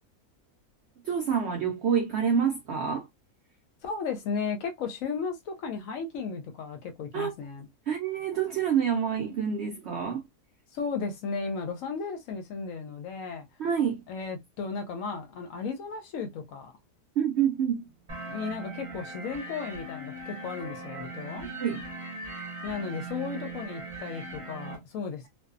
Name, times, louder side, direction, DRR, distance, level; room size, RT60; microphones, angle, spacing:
voice 1, 1.0-3.1 7.1-7.3 7.9-10.2 13.6-14.0 17.2-17.9 21.6-21.9, right 7 dB, 70° right, 0.6 m, -27 dB
voice 2, 3.8-7.7 10.7-13.5 14.1-16.7 18.2-21.5 22.6-25.3, left 5 dB, 70° left, 0.9 m, -35 dB
sound 1, 18.1-24.8, right 2 dB, 30° right, 0.6 m, -39 dB
2.6 x 2.2 x 2.4 m
omnidirectional pair, 1.6 m